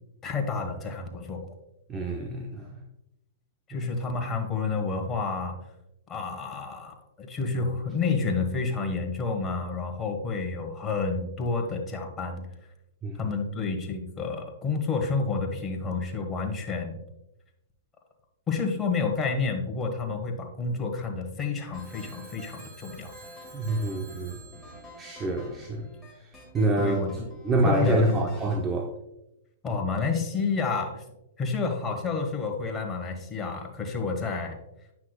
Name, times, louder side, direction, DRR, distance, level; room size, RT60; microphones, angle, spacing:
voice 1, 0.2-1.5 3.7-5.6 6.1-12.5 13.2-17.0 18.5-23.1 26.8-27.3 27.6-28.3 29.6-31.0 31.4-34.6, left 4 dB, 20° left, 1.2 m, -30 dB
voice 2, 1.9-2.8 13.0-13.2 23.5-24.4 25.0-25.9 26.2-26.3 26.5-27.0 27.4-28.9, right 2 dB, 20° right, 0.7 m, -26 dB
sound 1, 21.7-28.6, left 1 dB, ahead, 2.0 m, -48 dB
Telephone, 21.7-26.0, right 4 dB, 45° right, 2.5 m, -52 dB
9.3 x 6.0 x 2.2 m
hypercardioid pair, 135°, 0 cm